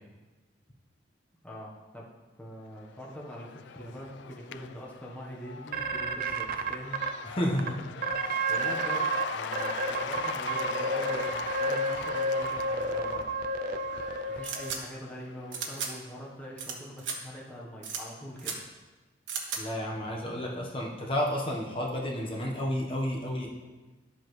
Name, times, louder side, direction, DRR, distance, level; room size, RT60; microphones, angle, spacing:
voice 1, 1.4-2.1 2.4-7.0 8.5-13.3 14.3-18.6, equal, 10° left, -5 dB, 1.1 m, -43 dB
Cheering / Applause / Crowd, 2.8-16.2, left 7 dB, 70° left, 0.3 m, -41 dB
sound 1, 5.7-7.1 7.6-7.7 8.0-9.2 9.5-14.7, right 2 dB, 50° right, 0.4 m, -30 dB
voice 2, 7.2-7.8 19.6-23.5, equal, 30° left, -2 dB, 1.1 m, -31 dB
sound 2, 14.4-14.8 15.5-15.9 16.6-16.7 17.0-17.2 17.8-18.0 18.4-18.6 19.3-19.6, right 6 dB, 80° right, 1.2 m, -34 dB
11.0 x 7.7 x 3.2 m, 1.2 s
head